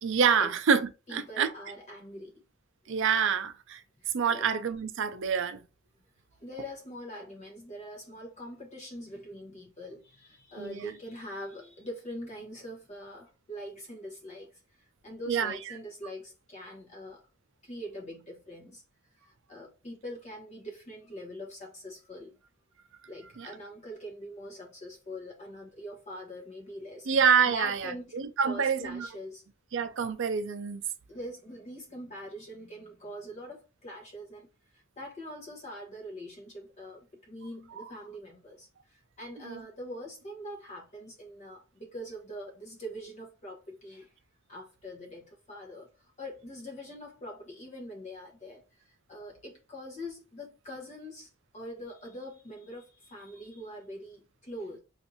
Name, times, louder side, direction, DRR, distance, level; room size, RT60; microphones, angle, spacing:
voice 1, 0.0-1.5 2.9-3.8 4.1-5.7 10.6-10.9 15.3-15.6 23.4-23.5 27.1-29.1 29.7-30.8 37.7-37.9 39.4-39.6, right 6 dB, 65° right, 0.5 m, -27 dB
voice 2, 1.1-2.4 4.0-4.5 6.4-17.2 17.6-18.8 19.2-22.3 23.1-27.1 27.4-29.4 31.1-34.5 35.0-44.1 44.5-45.9 46.2-54.8, equal, 35° left, 0.9 m, -43 dB
2.6 x 2.5 x 4.1 m
head